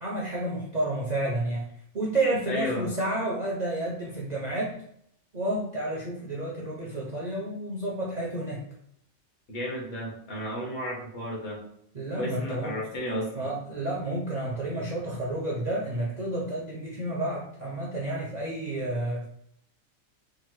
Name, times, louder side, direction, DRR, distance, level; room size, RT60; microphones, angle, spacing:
voice 1, 0.0-1.6 1.9-4.7 5.3-8.6 11.9-12.7 13.3-19.3, right 1 dB, 50° right, -4 dB, 0.5 m, -30 dB
voice 2, 2.5-2.9 9.5-11.6 12.1-13.5, left 1 dB, 60° left, -2 dB, 1.2 m, -33 dB
3.7 x 2.0 x 3.0 m, 0.70 s
omnidirectional pair, 1.4 m